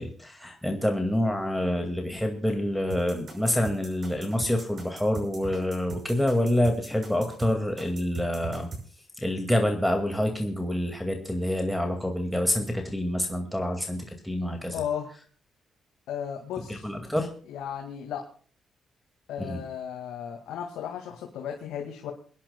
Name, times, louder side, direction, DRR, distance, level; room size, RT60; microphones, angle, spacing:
voice 1, 0.0-8.7 9.2-14.8 16.7-17.3 19.4-19.6, left 1 dB, ahead, 3 dB, 2.1 m, -27 dB
sound 1, 2.9-8.8, right 3 dB, 40° right, 5.9 m, -40 dB
voice 2, 14.7-15.1 16.1-16.9 17.5-18.3 19.3-22.1, left 8 dB, 85° left, 2 dB, 2.0 m, -35 dB
29.5 x 10.5 x 2.3 m, 0.43 s
cardioid pair, 90°, 0 cm